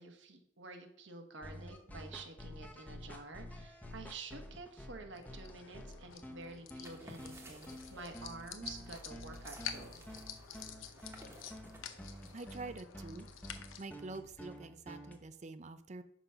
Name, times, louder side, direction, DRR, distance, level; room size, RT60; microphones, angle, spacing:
voice 1, 0.0-9.9, right 3 dB, 70° right, 5 dB, 1.1 m, -49 dB
sound 1, 1.4-15.2, equal, 10° left, 0.8 m, -50 dB
sound 2, 5.1-13.8, left 8 dB, 85° left, 0.7 m, -49 dB
sound 3, 6.7-12.8, right 1 dB, 15° right, 1.0 m, -56 dB
voice 2, 12.3-13.3 13.8-16.0, right 3 dB, 35° right, 12 dB, 0.5 m, -46 dB
6.0 x 5.3 x 5.7 m, 0.79 s
head